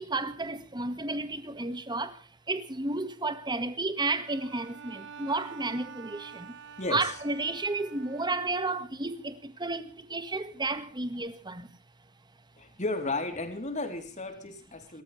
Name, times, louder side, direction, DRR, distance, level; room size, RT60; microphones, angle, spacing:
voice 1, 0.0-6.6 6.9-11.8, right 3 dB, 20° right, 1.8 m, -32 dB
Bowed string instrument, 4.2-8.8, right 6 dB, 60° right, 1.5 m, -47 dB
voice 2, 6.8-7.1 12.6-15.0, left 2 dB, 35° left, 3.8 m, -34 dB
28.5 x 14.5 x 3.4 m
head